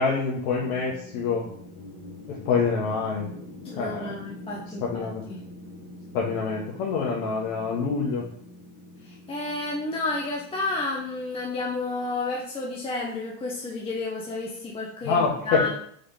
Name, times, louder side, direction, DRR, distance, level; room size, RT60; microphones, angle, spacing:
voice 1, 0.0-1.4 2.3-3.3 3.8-4.2 4.9-5.2 6.1-8.2 15.0-15.6, left 5 dB, 80° left, -3 dB, 1.1 m, -26 dB
sound 1, 0.6-12.7, left 1 dB, 45° left, 1.4 m, -45 dB
voice 2, 3.6-5.4 9.0-15.7, left 3 dB, 15° left, -3 dB, 0.5 m, -31 dB
4.0 x 3.8 x 3.4 m, 0.64 s
supercardioid pair, 125°, 42 cm